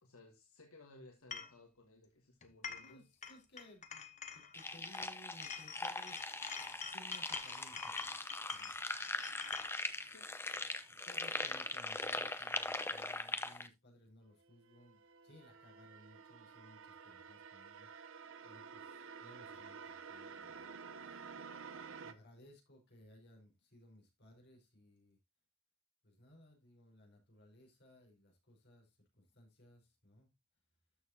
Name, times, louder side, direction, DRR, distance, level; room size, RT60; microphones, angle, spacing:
voice 1, 0.0-3.0 10.1-10.3, left 2 dB, 75° left, 1.6 m, -60 dB
sound 1, 1.3-1.5 2.4-3.0 3.2-5.1 5.4-9.7, left 6 dB, 35° left, 1.1 m, -47 dB
voice 2, 2.8-6.2 6.9-9.1 10.9-20.7 22.0-25.2 26.0-30.3, equal, 50° left, 4.9 m, -61 dB
sound 2, 4.5-13.7, left 2 dB, 10° left, 0.7 m, -41 dB
sound 3, 14.4-22.1, right 5 dB, 65° right, 0.8 m, -51 dB
13.0 x 6.7 x 2.8 m
head